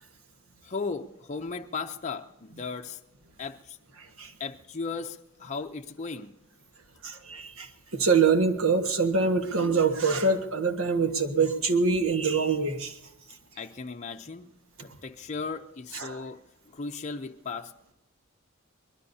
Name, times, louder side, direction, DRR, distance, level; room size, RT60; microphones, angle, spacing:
voice 1, 0.7-2.3 2.6-3.0 3.4-3.6 4.4-6.3 13.6-14.4 14.8-16.4 16.8-17.7, left 4 dB, 35° left, 4 dB, 0.6 m, -36 dB
voice 2, 4.0-4.3 7.0-13.0 15.9-16.2, right 4 dB, 80° right, 6 dB, 1.5 m, -25 dB
23.5 x 20.5 x 2.8 m, 0.94 s
head